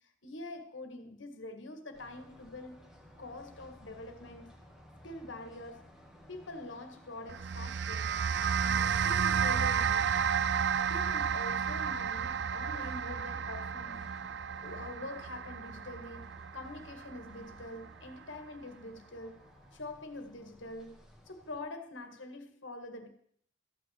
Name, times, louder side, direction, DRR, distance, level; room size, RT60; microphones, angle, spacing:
voice 1, 0.2-2.8 3.2-4.5 5.0-5.8 6.3-8.2 8.6-10.0 10.7-14.0 14.6-19.4 19.7-21.0 21.3-23.1, left 2 dB, 75° left, 1.9 m, -45 dB
sound 1, 1.9-21.6, equal, 5° right, 2.2 m, -57 dB
sound 2, 7.3-17.8, right 7 dB, 60° right, 0.4 m, -32 dB
14.0 x 6.1 x 8.7 m
head